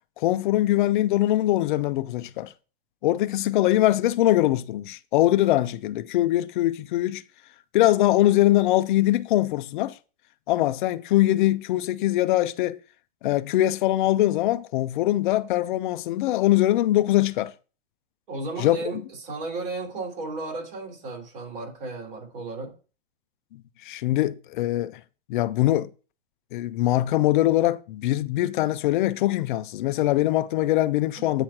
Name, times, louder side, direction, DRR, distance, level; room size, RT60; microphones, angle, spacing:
voice 1, 0.2-2.5 3.0-7.2 7.7-9.9 10.5-12.8 13.2-17.5 18.6-18.8 23.8-24.9 25.3-25.9 26.5-31.4, left 15 dB, 55° left, 0.5 m, -22 dB
voice 2, 18.3-22.7, right 3 dB, 65° right, 4.0 m, -34 dB
8.8 x 3.1 x 5.8 m
hypercardioid pair, 145°, 30 cm